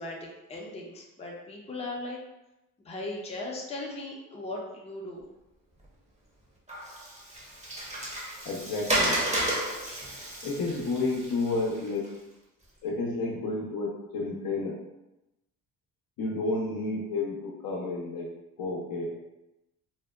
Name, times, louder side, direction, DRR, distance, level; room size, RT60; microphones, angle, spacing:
voice 1, 0.0-2.2 2.8-5.3, left 2 dB, 15° left, -2 dB, 0.6 m, -38 dB
Water, 6.7-12.1, right 1 dB, 15° right, 0.7 m, -32 dB
voice 2, 8.4-9.2 10.4-12.1 12.8-14.8 16.2-19.1, left 3 dB, 60° left, -1 dB, 0.6 m, -31 dB
2.7 x 2.1 x 2.2 m, 0.95 s
supercardioid pair, 60°, 41 cm